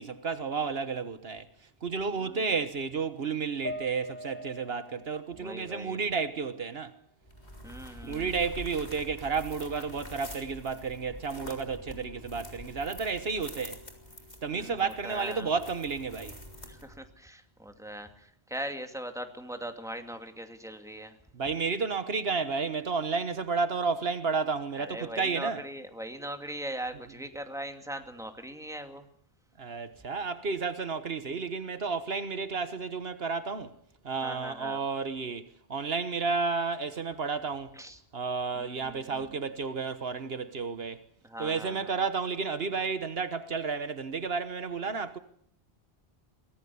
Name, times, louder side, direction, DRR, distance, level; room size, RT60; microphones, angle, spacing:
voice 1, 0.0-1.5 1.8-6.9 8.0-13.8 14.4-16.4 21.3-25.6 29.6-33.7 34.0-35.4 35.7-37.8 38.1-41.0 41.4-45.2, right 5 dB, 70° right, 1.5 m, -32 dB
voice 2, 2.2-2.5 5.4-6.0 7.6-8.3 14.5-15.5 16.7-21.1 24.8-29.1 34.2-34.8 37.8-38.0 38.5-39.3 41.2-42.0, right 1 dB, 5° right, 2.4 m, -40 dB
sound 1, 3.6-7.1 7.4-8.5, left 1 dB, 20° right, 3.7 m, -45 dB
sound 2, 7.2-17.1, left 1 dB, 45° left, 4.1 m, -46 dB
24.0 x 19.0 x 7.1 m
omnidirectional pair, 1.0 m